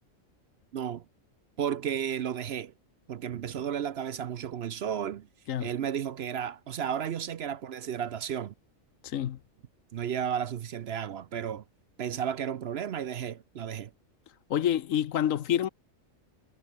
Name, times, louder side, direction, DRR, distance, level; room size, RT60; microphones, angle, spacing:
voice 1, 0.7-1.0 1.6-2.7 3.1-5.3 5.6-8.5 9.9-11.6 12.0-13.9, right 8 dB, 60° right, 0.8 m, -33 dB
voice 2, 9.0-9.4 14.5-15.7, left 10 dB, 80° left, 1.2 m, -27 dB
omnidirectional pair, 1.4 m